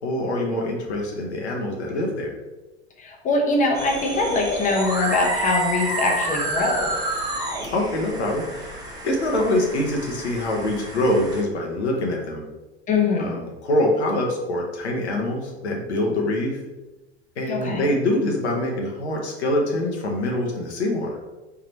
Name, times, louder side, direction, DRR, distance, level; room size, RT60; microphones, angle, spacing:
voice 1, 0.0-2.3 7.7-12.4 13.2-16.6 17.4-21.2, left 1 dB, 80° left, 0 dB, 0.9 m, -24 dB
voice 2, 3.0-6.9 12.9-13.4 17.5-17.8, left 3 dB, 25° left, 0 dB, 0.9 m, -23 dB
sound 1, 3.7-11.4, right 1 dB, 10° right, 1.0 m, -29 dB
4.7 x 3.4 x 2.9 m, 1.1 s
figure-of-eight pair, 80°, 33 cm